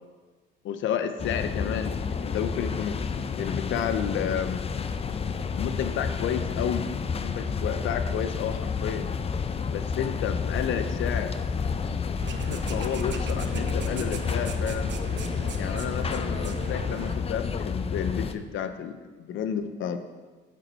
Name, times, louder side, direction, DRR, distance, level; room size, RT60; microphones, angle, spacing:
voice 1, 0.6-3.0 3.4-4.7 5.5-6.9 7.2-9.1 9.7-11.3 12.4-14.9 15.6-20.0, left 8 dB, 80° left, 9 dB, 0.6 m, -31 dB
sound 1, 1.2-18.3, left 5 dB, 30° left, 0.4 m, -30 dB
sound 2, 12.2-17.2, right 6 dB, 65° right, 0.6 m, -38 dB
7.5 x 5.3 x 4.3 m, 1.3 s
cardioid pair, 90°, 20 cm